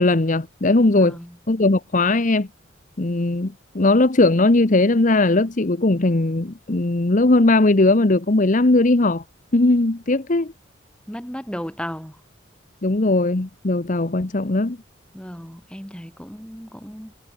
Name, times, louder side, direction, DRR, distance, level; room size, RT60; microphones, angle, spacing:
voice 1, 0.0-1.2 1.5-2.5 3.0-9.2 9.5-10.5 12.8-14.8, left 2 dB, 45° left, 1.0 m, -18 dB
voice 2, 0.9-1.4 11.1-12.2 15.1-17.1, equal, 5° left, 5.5 m, -35 dB
head